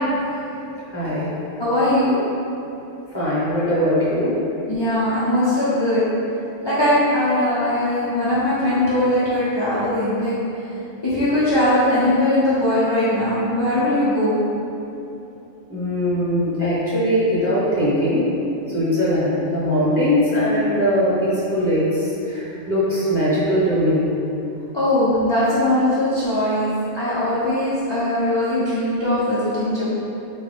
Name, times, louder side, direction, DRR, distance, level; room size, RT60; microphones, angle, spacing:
voice 1, 0.9-1.3 3.1-4.4 15.7-18.3 18.7-24.1, equal, 15° right, -11 dB, 0.8 m, -20 dB
voice 2, 1.6-2.1 4.7-6.1 6.6-10.3 11.0-14.3 24.7-29.9, left 1 dB, 35° left, -11 dB, 0.4 m, -20 dB
4.3 x 2.3 x 3.4 m, 2.8 s
omnidirectional pair, 1.3 m